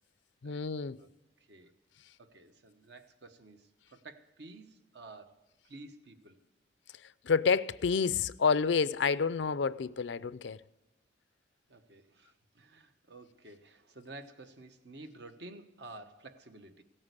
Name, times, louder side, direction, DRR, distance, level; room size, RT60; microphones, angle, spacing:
voice 1, 0.4-1.0 7.2-10.6, left 5 dB, 80° left, 0.5 m, -29 dB
voice 2, 1.4-1.7 2.2-6.4 11.7-16.8, right 2 dB, 65° right, 1.2 m, -51 dB
17.0 x 8.8 x 8.2 m
head